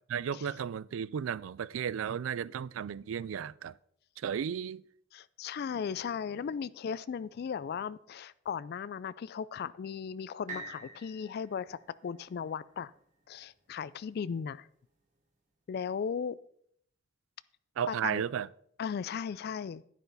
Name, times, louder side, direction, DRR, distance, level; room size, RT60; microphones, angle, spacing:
voice 1, 0.1-3.7 4.2-4.8 17.8-18.5, right 8 dB, 90° right, 0.3 m, -34 dB
voice 2, 5.1-12.9 13.3-14.7 15.7-16.4 17.9-18.2 18.8-19.8, left 7 dB, 55° left, 0.3 m, -37 dB
sound 1, 10.5-14.4 15.0-15.1, right 3 dB, 40° right, 3.0 m, -48 dB
10.5 x 9.3 x 3.9 m
head